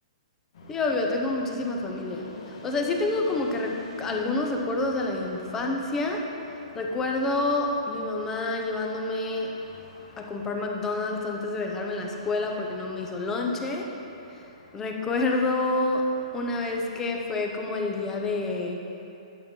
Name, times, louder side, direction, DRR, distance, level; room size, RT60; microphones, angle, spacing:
sound 1, 0.5-18.5, left 1 dB, 55° left, 1.5 m, -47 dB
voice 1, 0.7-6.2 6.7-9.5 10.2-13.9 14.3-14.4 14.7-16.0 16.3-18.8, left 2 dB, 10° left, 1 dB, 0.6 m, -28 dB
10.5 x 7.2 x 3.8 m, 2.9 s
hypercardioid pair, 170°, 4 cm